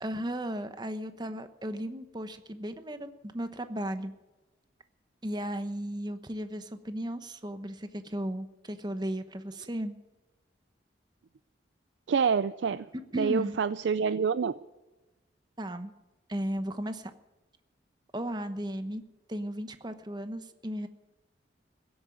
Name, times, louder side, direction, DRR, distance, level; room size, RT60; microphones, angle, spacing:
voice 1, 0.0-4.1 5.2-9.9 13.1-13.6 15.6-15.9 16.3-17.1 18.1-19.0 19.3-20.9, equal, 25° right, 9 dB, 1.0 m, -35 dB
voice 2, 12.1-12.9 13.1-14.5, right 6 dB, 80° right, 14 dB, 0.4 m, -27 dB
16.5 x 8.8 x 9.3 m, 1.1 s
head